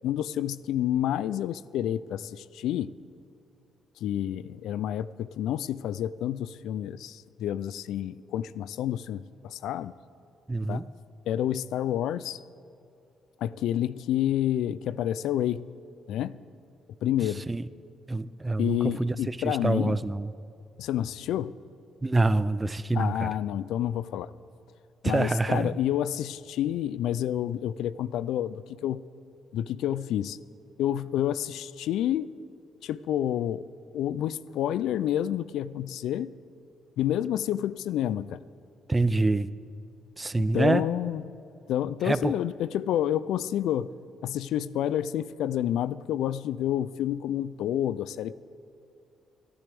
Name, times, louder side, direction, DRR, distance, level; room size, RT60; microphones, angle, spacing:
voice 1, 0.0-2.9 4.0-9.9 10.7-10.9 11.3-12.4 13.4-15.7 16.1-16.4 17.0-17.5 18.6-20.0 20.8-21.5 22.9-24.3 25.0-29.0 29.5-30.4 30.8-32.3 32.8-33.6 33.9-36.3 37.0-38.4 40.4-41.2 41.7-43.9 44.2-48.4, left 11 dB, 85° left, 17 dB, 0.4 m, -29 dB
voice 2, 10.5-10.8 17.5-17.7 18.1-20.3 22.0-23.3 25.0-25.7 38.9-39.5 40.2-40.9 42.0-42.4, right 2 dB, 20° right, 15 dB, 0.4 m, -26 dB
24.5 x 11.0 x 3.5 m, 2.7 s
cardioid pair, 90°, 0 cm